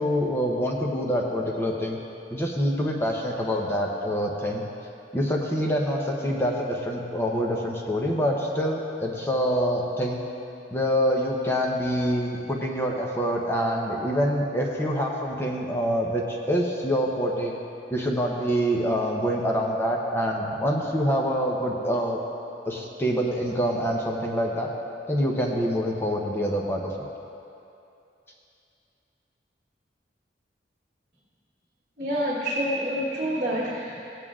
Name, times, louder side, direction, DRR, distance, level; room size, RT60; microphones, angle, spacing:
voice 1, 0.0-2.0 2.3-4.6 5.1-10.2 10.7-17.5 17.9-22.2 22.6-24.7 25.1-27.1, equal, 15° left, -2 dB, 0.7 m, -26 dB
voice 2, 32.0-34.1, equal, 50° right, -7 dB, 1.3 m, -27 dB
17.0 x 9.0 x 2.4 m, 2.7 s
head